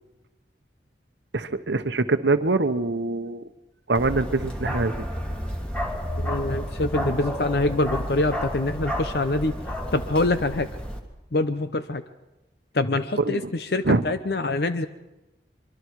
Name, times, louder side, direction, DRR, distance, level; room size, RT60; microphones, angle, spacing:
voice 1, 1.3-3.4 3.9-5.1 13.2-13.5 13.8-14.0, right 3 dB, 85° right, 10 dB, 1.0 m, -24 dB
Bark, 4.0-11.0, equal, 5° left, 2.0 m, -31 dB
voice 2, 6.2-9.5 9.9-10.7 11.3-12.0 12.7-14.9, left 2 dB, 65° left, 10 dB, 0.8 m, -25 dB
24.5 x 24.5 x 4.7 m, 1.0 s
head